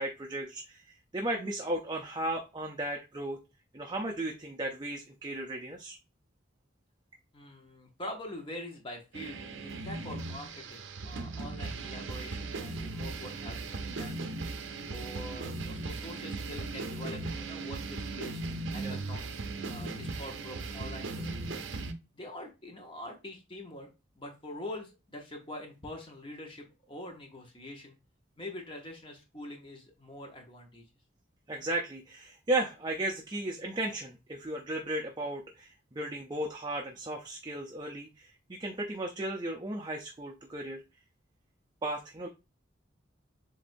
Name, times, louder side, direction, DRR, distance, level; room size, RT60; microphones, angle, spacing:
voice 1, 0.0-3.4 3.7-6.0 18.8-19.0 31.5-40.8 41.8-42.3, right 1 dB, 20° right, 2 dB, 0.5 m, -35 dB
voice 2, 7.3-14.3 14.9-18.4 18.7-19.4 19.7-21.6 22.1-23.9 24.2-27.9 28.4-30.9, left 1 dB, 25° left, 1 dB, 0.9 m, -44 dB
sound 1, 9.1-21.9, right 3 dB, 70° right, 0.6 m, -38 dB
7.5 x 2.6 x 2.6 m, 0.27 s
head